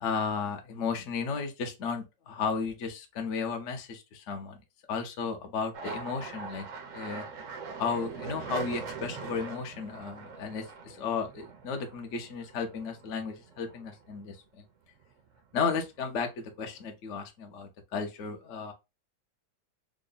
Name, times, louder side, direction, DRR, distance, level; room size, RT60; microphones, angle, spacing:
voice 1, 0.0-4.6 4.9-6.7 6.9-7.2 7.8-14.4 15.5-18.7, left 5 dB, 60° left, 0.8 m, -34 dB
sound 1, 5.7-14.5 14.9-15.6 15.9-16.8, right 5 dB, 65° right, 0.7 m, -43 dB
3.6 x 2.2 x 3.8 m
omnidirectional pair, 2.1 m